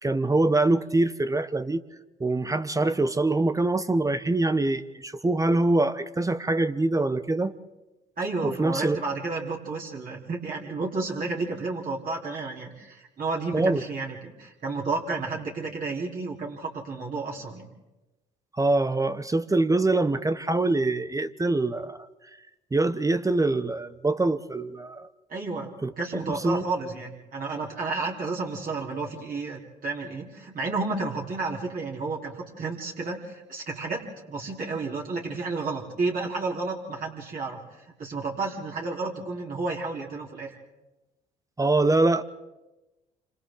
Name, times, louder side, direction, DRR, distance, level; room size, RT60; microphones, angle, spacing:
voice 1, 0.0-1.8 2.2-7.5 8.4-9.0 13.5-13.8 18.5-22.1 22.7-25.1 25.8-25.9 26.3-26.6 41.6-42.2, right 2 dB, 15° right, 12 dB, 0.9 m, -24 dB
voice 2, 8.2-17.7 25.3-25.7 26.0-34.0 34.3-40.5, right 3 dB, 45° right, -2 dB, 3.9 m, -31 dB
28.0 x 26.0 x 3.9 m, 1.0 s
hypercardioid pair, 55°, 19 cm